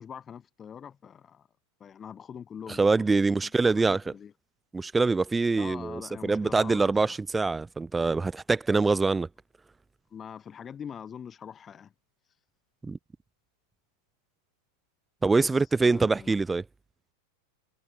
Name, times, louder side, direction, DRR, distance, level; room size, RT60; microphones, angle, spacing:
voice 1, 0.0-1.5 1.8-4.3 5.5-7.2 10.1-11.9 15.2-16.4, left 8 dB, 20° left, 4.5 m, -44 dB
voice 2, 2.8-4.1 4.7-9.3 12.8-13.0 15.2-16.6, right 3 dB, 10° right, 0.6 m, -24 dB
figure-of-eight pair, 90°, 0 cm